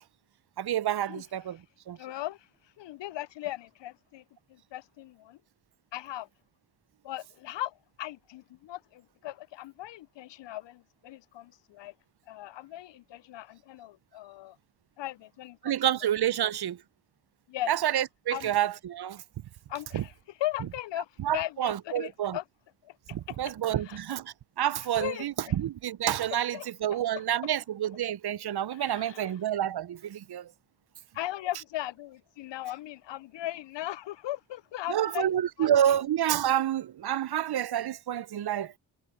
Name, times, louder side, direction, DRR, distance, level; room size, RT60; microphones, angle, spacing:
voice 1, 0.6-1.6 1.9-2.0 15.6-16.8 17.7-19.2 19.9-20.0 21.2-22.4 23.1-30.5 34.9-38.7, right 11 dB, 55° right, 0.7 m, -28 dB
voice 2, 2.0-2.5 2.8-4.2 4.5-5.4 5.9-6.3 7.0-11.9 12.3-14.6 15.0-15.8 16.4-16.5 17.5-17.7 18.3-18.5 19.7-20.1 20.4-22.4 22.8-23.4 23.8-24.0 25.0-25.5 26.5-27.2 28.7-29.4 31.1-35.3 35.6-35.7, left 14 dB, 65° left, 0.6 m, -38 dB
supercardioid pair, 50°, 47 cm